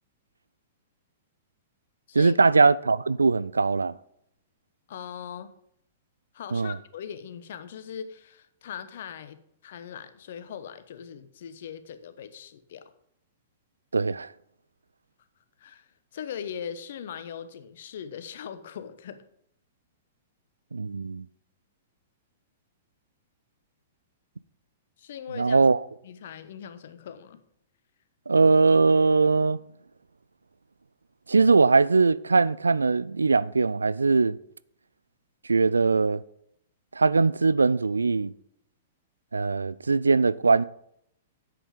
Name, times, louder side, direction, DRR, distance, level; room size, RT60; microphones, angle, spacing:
voice 1, 2.1-3.9 6.5-6.7 13.9-14.3 20.7-21.3 25.4-25.8 28.3-29.6 31.3-34.3 35.5-36.2 37.0-38.3 39.3-40.6, right 4 dB, 75° right, 0.3 m, -21 dB
voice 2, 4.9-5.5 6.3-12.9 15.6-19.2 25.0-25.7 26.0-27.4, left 8 dB, 55° left, 1.0 m, -40 dB
10.0 x 7.9 x 5.1 m
figure-of-eight pair, 105°, 0 cm